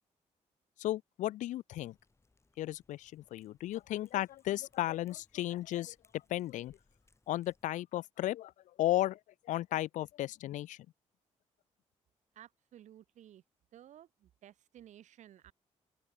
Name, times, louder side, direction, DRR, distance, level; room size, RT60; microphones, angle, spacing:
voice 1, 0.8-2.0 2.6-6.8 7.3-8.5 8.8-9.2 9.4-10.9, left 14 dB, 85° left, 0.6 m, -34 dB
Cat, 1.7-7.6, left 3 dB, 20° left, 7.7 m, -71 dB
voice 2, 12.3-13.4 13.7-15.5, right 11 dB, 75° right, 1.5 m, -55 dB
open air
cardioid pair, 100°, 12 cm